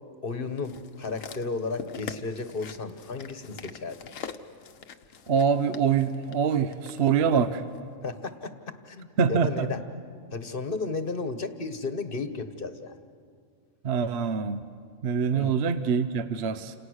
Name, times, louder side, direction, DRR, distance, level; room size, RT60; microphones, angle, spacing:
voice 1, 0.2-4.0 8.0-8.5 8.9-9.8 10.3-12.9 15.3-15.6, left 4 dB, 45° left, 9 dB, 1.4 m, -33 dB
sound 1, 0.6-7.0 7.7-7.8, left 6 dB, 75° left, 1.4 m, -43 dB
voice 2, 5.3-7.5 9.2-9.7 13.8-14.6 15.0-16.7, right 6 dB, 55° right, 11 dB, 1.0 m, -24 dB
29.5 x 27.5 x 6.4 m, 2.1 s
omnidirectional pair, 1.4 m